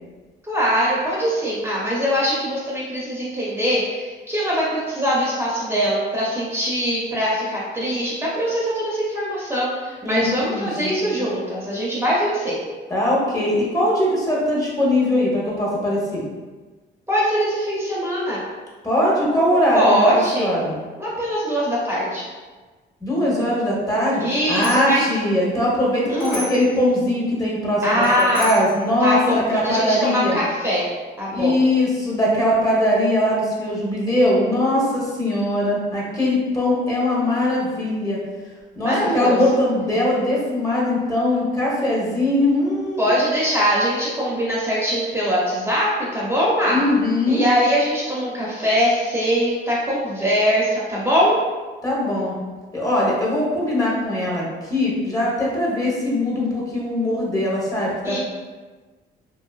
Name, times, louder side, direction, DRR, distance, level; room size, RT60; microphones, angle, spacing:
voice 1, 0.4-12.6 17.1-18.4 19.7-20.5 21.0-22.2 24.2-25.1 26.1-26.4 27.8-28.5 29.0-30.9 31.2-31.6 38.8-39.5 43.0-46.8 47.3-51.4 58.0-58.2, equal, 10° right, -7 dB, 0.6 m, -22 dB
voice 2, 10.0-11.3 12.9-16.3 18.8-20.8 23.0-24.2 24.5-30.4 31.3-38.2 38.8-43.1 46.7-47.4 51.8-52.3 52.7-58.2, left 1 dB, 15° left, -5 dB, 0.8 m, -21 dB
Bicycle bell, 24.3-25.0 26.2-26.7 28.0-28.8, left 1 dB, 50° left, 0.7 m, -34 dB
2.6 x 2.3 x 2.3 m, 1.3 s
cardioid pair, 90°, 20 cm